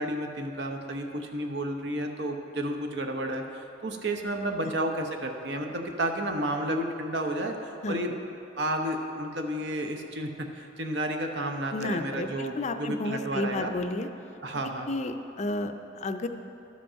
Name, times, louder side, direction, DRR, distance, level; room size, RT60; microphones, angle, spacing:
voice 1, 0.0-8.1 8.6-13.7 14.4-14.9, right 1 dB, 70° right, 3 dB, 0.9 m, -31 dB
voice 2, 11.7-14.1 14.9-16.3, left 2 dB, 40° left, 8 dB, 0.4 m, -31 dB
12.0 x 5.2 x 5.7 m, 2.7 s
head